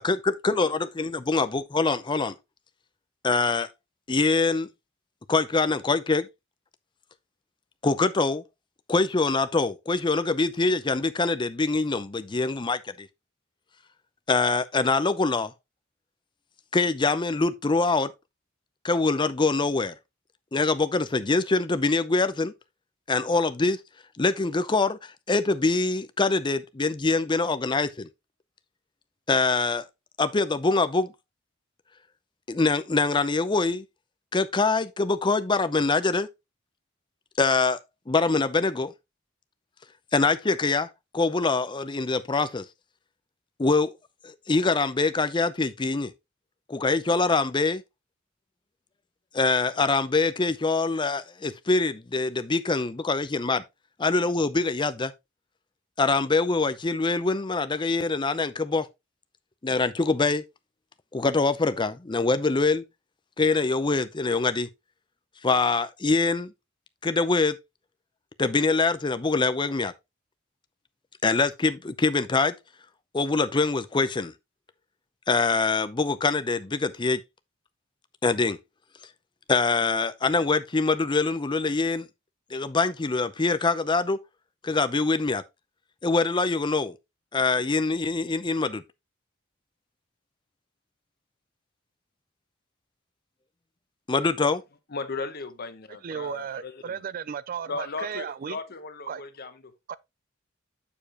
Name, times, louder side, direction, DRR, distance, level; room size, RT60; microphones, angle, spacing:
voice 1, 0.0-2.4 3.2-3.7 4.1-4.7 5.3-6.3 7.8-8.4 8.9-13.1 14.3-15.5 16.7-18.1 18.8-19.9 20.5-22.5 23.1-23.8 24.2-28.1 29.3-29.8 30.2-31.1 32.5-33.8 34.3-36.3 37.4-37.8 38.1-38.9 40.1-40.9 41.1-42.7 43.6-43.9 44.2-46.1 46.7-47.8 49.3-53.6 54.0-55.1 56.0-58.9 59.6-60.4 61.1-62.8 63.4-64.7 65.4-66.5 67.0-67.6 68.4-69.9 71.2-72.5 73.1-74.3 75.3-77.2 78.2-78.6 79.5-82.1 82.5-84.2 84.6-85.4 86.0-87.0 87.3-88.8 94.1-94.6, left 3 dB, 25° left, 0.6 m, -24 dB
voice 2, 94.9-97.0 97.7-99.7, left 4 dB, 50° left, 0.9 m, -36 dB
voice 3, 96.0-98.6 99.1-99.2 99.9-100.0, right 7 dB, 45° right, 0.3 m, -34 dB
7.1 x 6.7 x 2.9 m
head